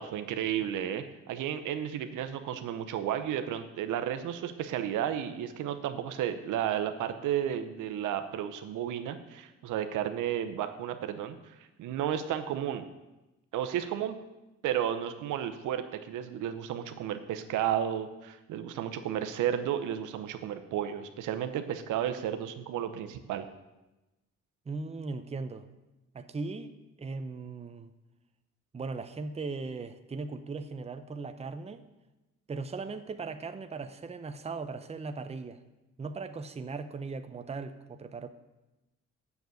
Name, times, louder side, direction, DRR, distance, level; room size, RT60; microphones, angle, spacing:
voice 1, 0.0-12.9 13.5-14.1 14.6-23.5, right 10 dB, 85° right, 8 dB, 0.8 m, -33 dB
voice 2, 24.7-25.7 26.1-26.7 27.0-27.9 28.7-31.8 32.5-35.6 36.0-38.3, right 4 dB, 20° right, 9 dB, 0.7 m, -38 dB
7.2 x 6.9 x 7.8 m, 1.0 s
cardioid pair, 90°, 30 cm